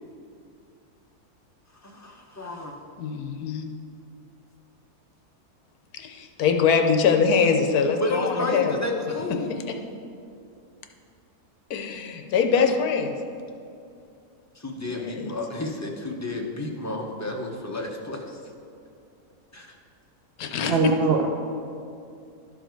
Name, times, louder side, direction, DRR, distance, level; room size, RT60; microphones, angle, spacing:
voice 1, 1.8-2.7 8.0-9.6 12.6-12.7 14.6-18.4 19.5-19.7, left 1 dB, 25° left, 0 dB, 0.4 m, -31 dB
voice 2, 3.0-3.6 5.9-8.8 11.7-13.2 14.9-15.3 20.4-20.7, left 6 dB, 75° left, 5 dB, 1.2 m, -23 dB
voice 3, 20.7-21.3, right 6 dB, 60° right, 2 dB, 0.6 m, -21 dB
12.0 x 4.8 x 4.5 m, 2.4 s
omnidirectional pair, 1.6 m